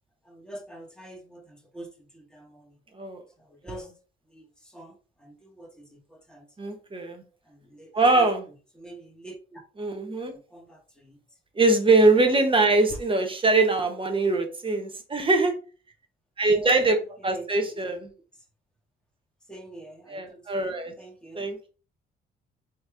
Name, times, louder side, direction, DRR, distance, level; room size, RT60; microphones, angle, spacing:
voice 1, 0.2-2.8 3.4-3.9 4.3-6.5 7.4-8.3 8.7-9.6 10.2-11.2 12.9-13.0 16.4-17.8 19.5-21.5, right 1 dB, 5° left, 0 dB, 1.7 m, -45 dB
voice 2, 6.6-7.2 7.9-8.4 9.8-10.4 11.5-15.5 16.4-17.0 17.2-18.1 20.1-20.9 21.3-21.7, right 3 dB, 25° right, 5 dB, 1.1 m, -22 dB
4.1 x 3.3 x 3.5 m, 0.36 s
cardioid pair, 90°, 20 cm